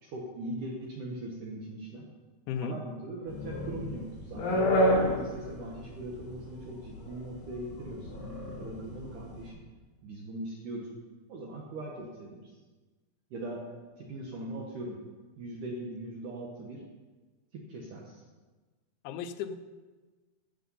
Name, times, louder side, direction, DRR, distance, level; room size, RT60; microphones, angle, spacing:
voice 1, 0.0-2.1 2.6-9.6 10.0-10.9 11.3-12.6 13.3-13.6 14.0-15.0 15.4-16.8 17.5-18.2, right 1 dB, 70° right, -2 dB, 2.0 m, -40 dB
voice 2, 2.5-2.8 19.0-19.5, left 7 dB, 85° left, 10 dB, 3.0 m, -34 dB
sound 1, 3.3-9.4, equal, 70° left, 5.2 m, -29 dB
12.5 x 7.6 x 5.5 m, 1.3 s
omnidirectional pair, 5.2 m